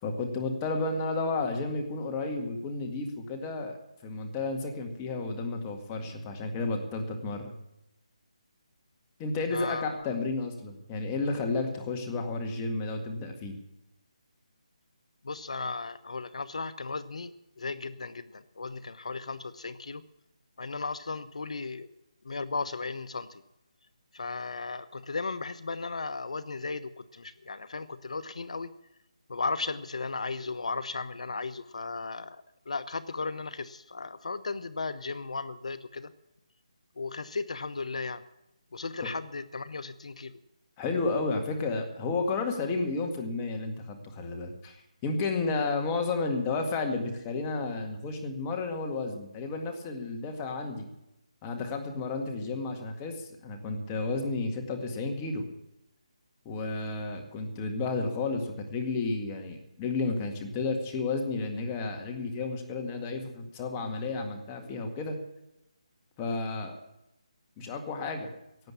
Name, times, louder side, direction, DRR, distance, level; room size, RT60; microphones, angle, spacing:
voice 1, 0.0-3.8 4.0-7.5 9.2-13.6 39.0-39.1 40.8-50.9 51.4-55.4 56.5-65.2 66.2-66.8 67.6-68.3, left 3 dB, 15° left, 3 dB, 1.9 m, -32 dB
voice 2, 9.5-10.1 15.2-20.0 20.6-21.9 22.2-23.4 24.1-28.7 29.3-36.1 37.0-38.2 38.7-40.4, left 4 dB, 70° left, 12 dB, 0.9 m, -36 dB
17.5 x 7.9 x 8.5 m, 0.88 s
hypercardioid pair, 165°, 4 cm